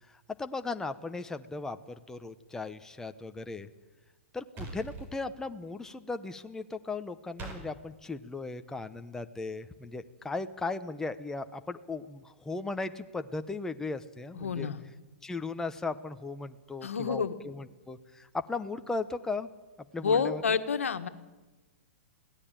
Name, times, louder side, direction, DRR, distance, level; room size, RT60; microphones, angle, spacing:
voice 1, 0.4-1.8 2.1-3.7 4.3-14.7 15.2-19.5 19.9-20.6, left 3 dB, 5° left, 8 dB, 1.0 m, -37 dB
sound 1, 4.6-5.1 7.4-7.6, right 3 dB, 30° right, 5.8 m, -40 dB
voice 2, 14.3-14.8 16.8-17.3 20.0-21.1, left 6 dB, 90° left, 9 dB, 1.6 m, -29 dB
23.0 x 17.0 x 9.1 m, 1.2 s
hypercardioid pair, 130°, 7 cm